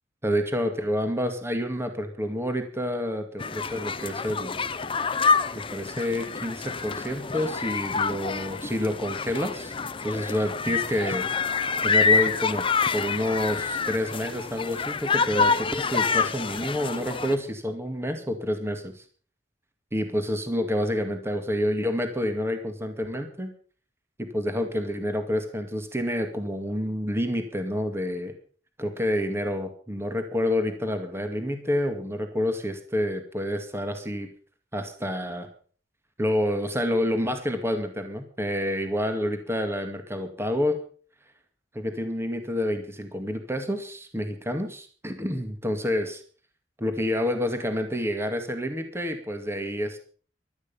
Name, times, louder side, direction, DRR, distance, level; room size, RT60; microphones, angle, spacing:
voice 1, 0.2-4.6 5.7-9.8 10.0-11.3 11.8-12.6 12.9-19.0 19.9-23.5 24.2-28.3 28.8-34.3 34.7-35.5 36.2-40.8 41.7-46.2 46.8-50.0, equal, 15° right, 6 dB, 2.1 m, -28 dB
sound 1, 3.4-17.3, left 5 dB, 30° left, 0.8 m, -27 dB
16.5 x 12.5 x 5.6 m, 0.43 s
head